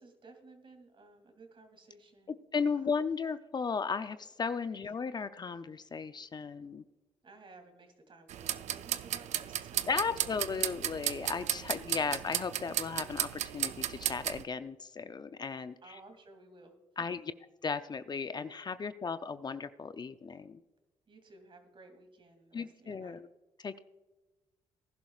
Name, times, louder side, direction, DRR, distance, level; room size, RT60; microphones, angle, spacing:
voice 1, 0.0-2.3 2.7-3.0 4.7-4.8 7.2-10.7 15.8-16.7 21.1-23.2, right 2 dB, 45° right, 6 dB, 2.6 m, -56 dB
voice 2, 2.5-6.8 9.9-16.0 17.0-17.3 17.6-20.6 22.5-23.3 23.6-23.8, left 5 dB, 35° left, 11 dB, 0.5 m, -35 dB
sound 1, 8.3-14.4, right 11 dB, 70° right, 0.5 m, -35 dB
19.0 x 11.5 x 2.4 m, 1.1 s
cardioid pair, 75°, 12 cm